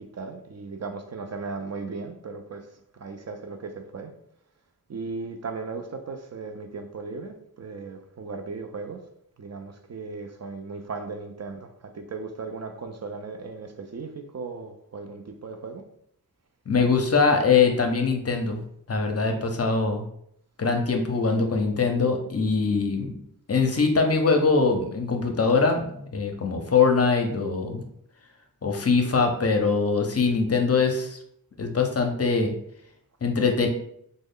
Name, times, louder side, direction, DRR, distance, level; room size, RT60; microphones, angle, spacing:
voice 1, 0.0-2.7 2.9-4.1 4.9-9.0 9.4-15.8, right 4 dB, 45° right, 6 dB, 0.4 m, -37 dB
voice 2, 16.7-18.6 18.9-20.0 20.6-23.1 23.5-27.8 28.6-31.2 31.6-32.5 33.2-33.7, left 4 dB, 40° left, 4 dB, 0.5 m, -22 dB
3.1 x 2.1 x 3.6 m, 0.71 s
wide cardioid pair, 65°, 36 cm